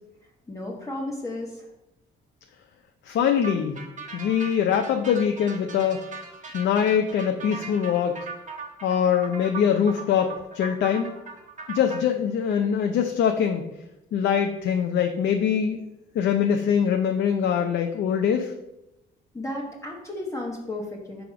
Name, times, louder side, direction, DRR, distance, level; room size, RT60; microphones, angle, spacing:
voice 1, 0.5-1.6 19.3-21.2, left 1 dB, 15° left, -3 dB, 1.1 m, -33 dB
voice 2, 3.0-3.8 4.1-6.0 6.5-8.2 8.8-11.1 11.7-13.6 14.1-15.8 16.1-18.5, left 8 dB, 65° left, 4 dB, 0.6 m, -23 dB
sound 1, 3.4-12.0, right 4 dB, 40° right, 1.2 m, -39 dB
5.1 x 4.9 x 5.0 m, 0.92 s
cardioid pair, 90°, 20 cm